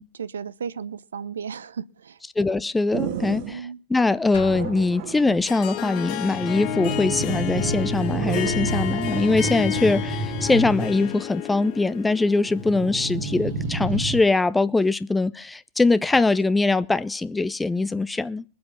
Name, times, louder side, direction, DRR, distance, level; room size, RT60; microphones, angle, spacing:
voice 1, 0.2-2.2 3.5-3.8, right 7 dB, 70° right, 0.6 m, -34 dB
voice 2, 2.4-3.6 3.9-18.4, left 3 dB, 10° left, 0.6 m, -22 dB
sound 1, 2.9-3.6 4.5-5.4 6.2-11.1 12.5-14.2, right 3 dB, 50° right, 1.5 m, -29 dB
Drum, 4.3-5.5, left 5 dB, 65° left, 2.6 m, -38 dB
Harp, 5.4-13.9, left 12 dB, 45° left, 1.6 m, -32 dB
22.0 x 7.8 x 5.3 m
figure-of-eight pair, 90°, 0 cm